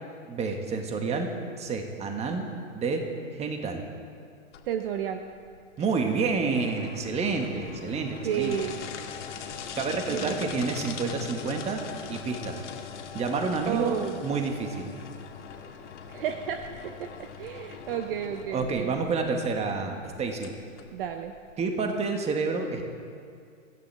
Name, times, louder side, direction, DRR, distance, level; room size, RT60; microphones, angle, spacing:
voice 1, 0.3-1.3 1.6-2.4 2.7-3.0 3.3-3.8 5.8-8.6 9.8-11.8 12.1-12.6 13.1-14.0 14.2-14.9 18.5-20.5 21.6-22.8, right 4 dB, 15° right, 4 dB, 1.8 m, -29 dB
sound 1, 4.5-21.6, left 7 dB, 65° left, 2.1 m, -41 dB
voice 2, 4.7-5.2 8.2-8.8 10.1-10.5 13.6-14.2 16.1-18.9 20.9-21.3, right 9 dB, 45° right, 6 dB, 1.0 m, -32 dB
24.5 x 14.5 x 3.5 m, 2.3 s
hypercardioid pair, 130°, 39 cm